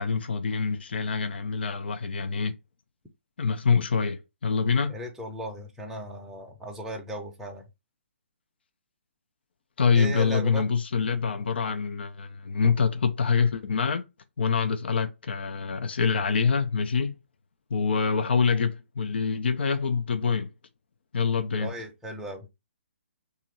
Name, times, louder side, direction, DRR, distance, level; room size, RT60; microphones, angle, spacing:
voice 1, 0.0-2.5 3.4-5.0 9.8-14.1 14.4-17.1 17.7-20.5 21.1-21.7, left 5 dB, 60° left, 0.5 m, -25 dB
voice 2, 4.9-7.7 9.9-10.6 12.6-12.8 21.6-22.5, right 1 dB, 5° right, 0.6 m, -36 dB
2.9 x 2.5 x 4.1 m
figure-of-eight pair, 135°, 7 cm